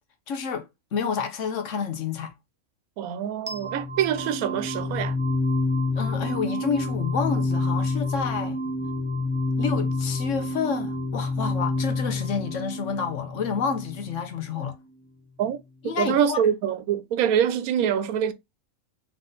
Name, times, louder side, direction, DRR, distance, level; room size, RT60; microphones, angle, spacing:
voice 1, 0.3-2.3 6.0-8.6 9.6-14.8 15.8-16.4, left 6 dB, 65° left, 1.1 m, -29 dB
voice 2, 3.0-5.2 15.4-15.6 16.0-18.3, right 9 dB, 90° right, 1.1 m, -24 dB
sound 1, 3.5-14.4, left 2 dB, 10° right, 0.5 m, -28 dB
3.7 x 3.3 x 3.8 m
omnidirectional pair, 1.5 m